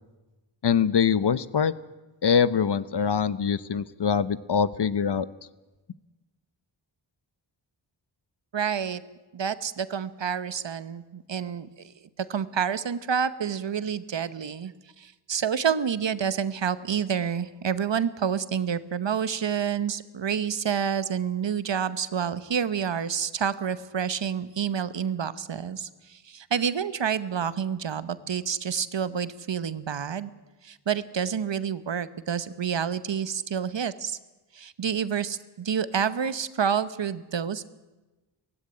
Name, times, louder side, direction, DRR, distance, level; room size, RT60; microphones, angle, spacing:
voice 1, 0.6-1.7 2.2-5.3, left 7 dB, 60° left, 16 dB, 0.9 m, -23 dB
voice 2, 8.5-9.0 9.3-11.7 12.2-30.3 30.6-34.2 34.5-37.7, right 7 dB, 70° right, 14 dB, 1.0 m, -28 dB
17.0 x 16.0 x 9.9 m, 1.1 s
cardioid pair, 50°, 46 cm